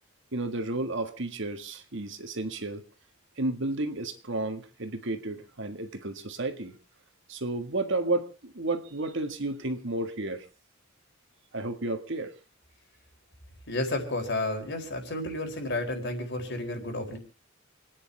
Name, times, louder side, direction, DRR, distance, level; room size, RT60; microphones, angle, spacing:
voice 1, 0.3-2.8 3.4-6.8 7.3-10.5 11.5-12.3, right 2 dB, 65° right, 8 dB, 1.6 m, -32 dB
voice 2, 13.7-17.2, left 2 dB, 60° left, 4 dB, 4.4 m, -31 dB
29.0 x 9.9 x 3.4 m, 0.33 s
head